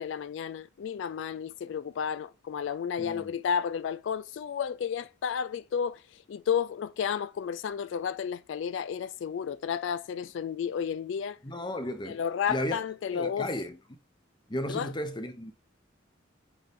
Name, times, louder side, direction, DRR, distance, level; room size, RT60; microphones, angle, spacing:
voice 1, 0.0-11.4 12.1-13.5 14.7-14.9, left 7 dB, 70° left, 0.3 m, -32 dB
voice 2, 3.0-3.3 11.4-12.2 12.5-12.8 13.1-13.8 14.5-15.5, left 1 dB, 25° left, 0.9 m, -34 dB
8.6 x 3.8 x 3.6 m
head